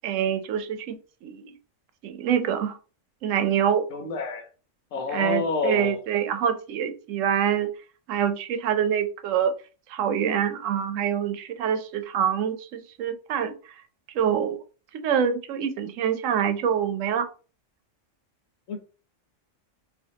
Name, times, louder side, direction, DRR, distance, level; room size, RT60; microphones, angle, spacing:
voice 1, 0.0-1.6 2.0-2.8 3.2-3.8 5.1-7.7 8.1-9.5 9.9-13.5 14.1-14.6 14.9-17.3, right 8 dB, 85° right, 1.0 m, -25 dB
voice 2, 3.9-4.5 4.9-6.0 18.7-18.8, left 4 dB, 85° left, 1.2 m, -28 dB
4.3 x 2.5 x 2.7 m
omnidirectional pair, 1.3 m